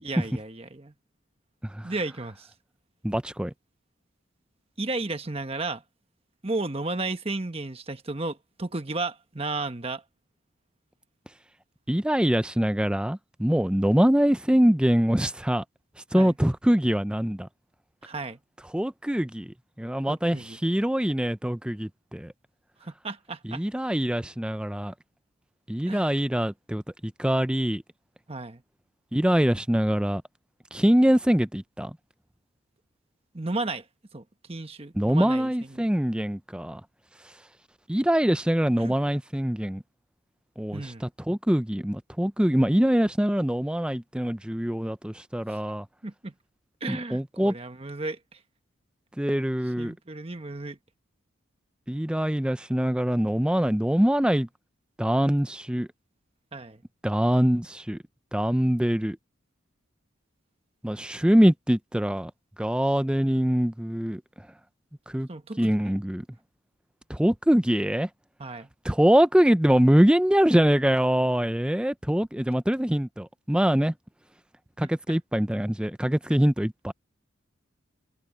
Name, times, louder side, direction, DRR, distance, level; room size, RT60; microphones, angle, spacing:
voice 1, 0.0-0.9 1.8-2.5 4.8-5.8 6.4-10.0 16.1-16.4 18.0-18.4 20.1-20.6 22.8-23.6 25.9-26.1 28.3-28.6 33.3-33.9 34.1-35.9 38.8-38.9 40.7-41.1 45.5-45.6 46.0-46.3 46.8-48.4 49.8-50.8 56.5-56.8 65.3-66.0 68.4-68.7 74.8-75.2, right 2 dB, 30° right, 1.2 m, -34 dB
voice 2, 3.0-3.5 11.9-15.6 16.1-17.5 18.7-20.4 20.6-22.3 23.5-24.9 25.7-26.8 27.2-27.8 29.1-30.2 30.7-32.0 35.0-36.8 37.9-39.8 40.6-45.9 46.9-47.5 49.2-49.9 51.9-54.5 55.0-55.9 57.0-58.0 58.3-59.2 60.8-62.3 62.6-64.2 65.1-65.3 65.6-66.3 67.1-68.1 68.8-73.9 74.8-76.9, equal, 5° right, 0.4 m, -23 dB
head